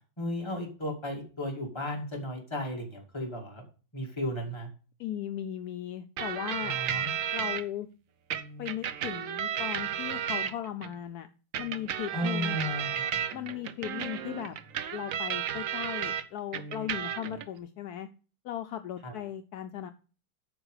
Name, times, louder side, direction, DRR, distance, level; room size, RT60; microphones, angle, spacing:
voice 1, 0.2-3.6 3.9-4.7 6.6-7.1 12.1-13.2 19.0-19.1, left 1 dB, 15° left, 0 dB, 2.0 m, -34 dB
voice 2, 5.0-6.8 7.3-7.9 8.6-11.3 11.6-12.6 13.3-14.5 14.9-18.1 18.4-19.9, left 11 dB, 75° left, 8 dB, 0.9 m, -37 dB
sound 1, 6.2-7.6 8.3-10.9 11.5-16.2 16.5-17.4, right 9 dB, 65° right, 0.8 m, -33 dB
8.9 x 5.6 x 4.8 m, 0.36 s
omnidirectional pair, 2.2 m